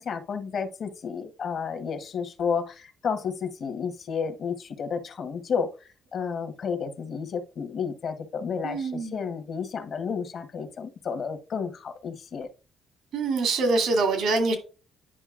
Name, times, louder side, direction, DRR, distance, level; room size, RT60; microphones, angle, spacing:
voice 1, 0.0-12.5, left 6 dB, 60° left, 1.1 m, -31 dB
voice 2, 8.6-9.2 13.1-14.6, right 3 dB, 80° right, 2.3 m, -24 dB
9.9 x 5.5 x 2.4 m
cardioid pair, 90°, 0 cm